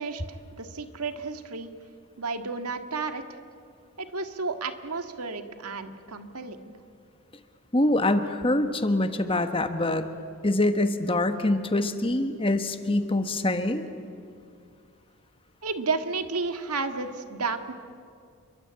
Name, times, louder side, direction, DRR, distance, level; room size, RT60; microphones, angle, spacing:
voice 1, 0.0-1.7 2.2-3.4 4.0-6.7 15.6-17.7, right 4 dB, 90° right, 7 dB, 1.9 m, -32 dB
voice 2, 7.7-10.0 10.4-13.8, left 1 dB, 25° left, 8 dB, 1.3 m, -24 dB
29.0 x 23.0 x 8.8 m, 2.3 s
head